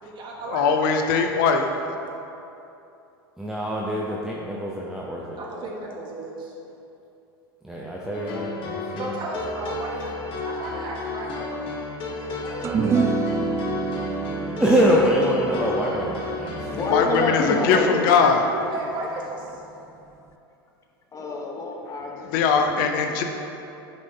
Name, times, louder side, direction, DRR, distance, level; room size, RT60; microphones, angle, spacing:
voice 1, 0.0-0.9 1.8-2.1 5.3-6.5 9.0-11.9 12.2-13.1 18.1-19.6, right 2 dB, 40° right, -2 dB, 1.5 m, -35 dB
voice 2, 0.5-1.7 16.9-17.8 18.0-18.4 22.3-23.2, left 6 dB, 60° left, 4 dB, 0.6 m, -20 dB
voice 3, 3.4-5.4 7.6-9.1 13.9-14.2 14.6-16.8, equal, 5° right, -4 dB, 0.7 m, -24 dB
sound 1, 8.1-17.7, left 3 dB, 45° left, 1.2 m, -32 dB
sound 2, 12.6-19.2, right 5 dB, 20° right, 0.3 m, -29 dB
voice 4, 16.6-18.1 21.1-23.2, left 3 dB, 25° left, 1 dB, 1.0 m, -28 dB
9.3 x 5.3 x 2.8 m, 2.8 s
hypercardioid pair, 90°, 13 cm